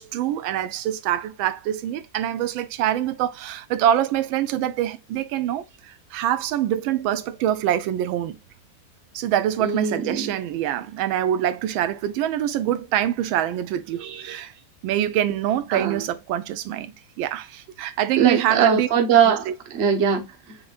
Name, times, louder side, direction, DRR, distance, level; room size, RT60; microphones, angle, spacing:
voice 1, 0.0-8.4 9.1-14.5 14.8-18.9 19.3-19.5, right 11 dB, 85° right, 1.4 m, -25 dB
voice 2, 9.6-10.3 13.9-14.4 15.7-16.0 18.2-20.6, right 7 dB, 40° right, 1.0 m, -22 dB
6.1 x 3.4 x 2.4 m
omnidirectional pair, 2.2 m